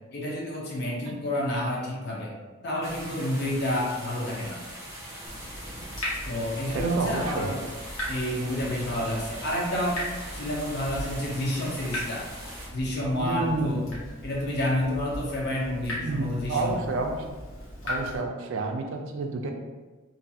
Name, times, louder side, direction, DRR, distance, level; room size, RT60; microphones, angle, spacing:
voice 1, 0.1-2.3 2.6-4.6 6.3-7.7 8.1-10.0 10.3-12.3 12.7-13.9 14.2-16.8, left 1 dB, 50° left, -3 dB, 0.6 m, -29 dB
sound 1, 2.8-12.7, right 1 dB, 15° right, 0.5 m, -41 dB
Water tap faucet / Drip, 5.3-18.2, equal, 70° left, 1.0 m, -38 dB
voice 2, 6.7-7.5 13.2-13.8 16.0-17.2 17.8-19.5, right 3 dB, 65° right, 3 dB, 0.3 m, -30 dB
2.5 x 2.3 x 2.6 m, 1.2 s
head